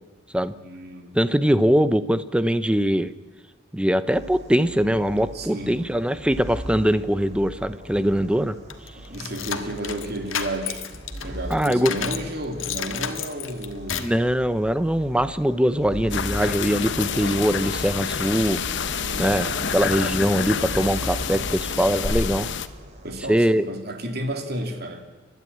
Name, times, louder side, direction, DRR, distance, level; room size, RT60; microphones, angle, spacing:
voice 1, 0.6-1.2 5.3-5.9 9.0-10.9 11.2-14.1 18.9-19.6 23.0-25.0, right 1 dB, 55° right, 4 dB, 2.9 m, -32 dB
voice 2, 1.1-3.1 3.7-8.6 11.5-11.9 14.0-18.6 19.2-22.5 23.3-23.7, equal, 5° right, 13 dB, 0.7 m, -22 dB
sound 1, 4.1-23.3, right 1 dB, 35° right, 2.5 m, -40 dB
sound 2, 8.7-12.3 12.6-14.2, left 8 dB, 75° left, 1.5 m, -31 dB
sound 3, 16.1-22.7, left 6 dB, 60° left, 0.9 m, -28 dB
29.5 x 12.5 x 8.7 m, 1.2 s
head